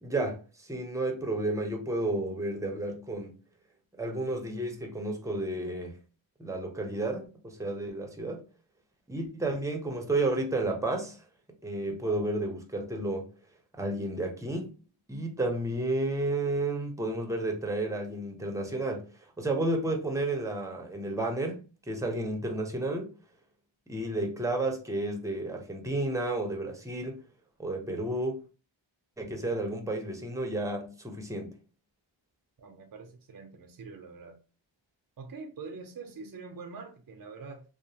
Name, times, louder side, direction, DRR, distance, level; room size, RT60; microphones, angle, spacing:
voice 1, 0.0-3.3 3.9-6.0 6.4-8.5 9.1-11.2 11.6-13.3 13.7-14.7 15.1-19.1 19.4-23.1 23.9-27.2 27.6-28.4 29.2-31.5, right 2 dB, 5° right, 0.6 m, -32 dB
voice 2, 32.6-34.4 35.2-37.6, right 4 dB, 45° right, 0.5 m, -44 dB
2.9 x 2.1 x 2.7 m
wide cardioid pair, 45°, 47 cm